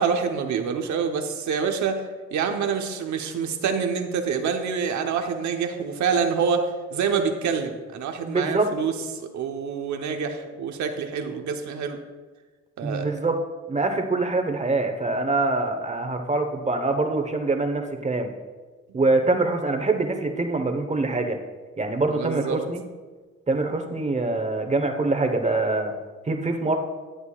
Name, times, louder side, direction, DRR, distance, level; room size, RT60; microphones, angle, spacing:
voice 1, 0.0-2.0 2.3-12.0 12.8-13.1 22.1-22.6, right 6 dB, 70° right, 5 dB, 1.0 m, -26 dB
voice 2, 8.2-8.7 12.8-13.4 13.7-18.3 18.9-21.4 21.8-22.8 23.5-25.9 26.3-26.8, right 3 dB, 25° right, 6 dB, 1.0 m, -24 dB
11.5 x 8.0 x 2.4 m, 1.3 s
cardioid pair, 90°, 30 cm